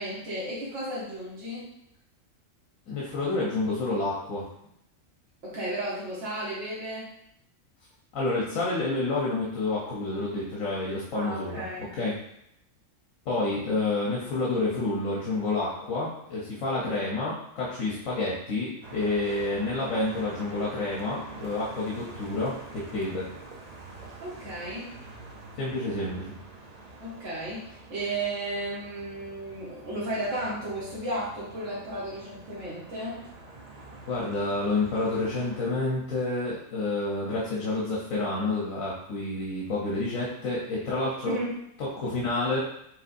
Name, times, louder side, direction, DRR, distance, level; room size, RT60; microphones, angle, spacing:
voice 1, 0.0-1.7 5.4-7.1 11.1-11.9 24.2-24.9 27.0-33.3 41.3-41.6, right 1 dB, 70° right, -8 dB, 1.6 m, -34 dB
voice 2, 2.9-4.5 8.1-11.6 11.9-12.2 13.3-23.3 25.6-26.3 34.1-41.3 41.8-42.6, left 2 dB, 90° left, -5 dB, 1.3 m, -29 dB
sound 1, 18.8-35.6, right 3 dB, 45° right, 0.6 m, -46 dB
5.3 x 3.7 x 2.6 m, 0.77 s
omnidirectional pair, 1.4 m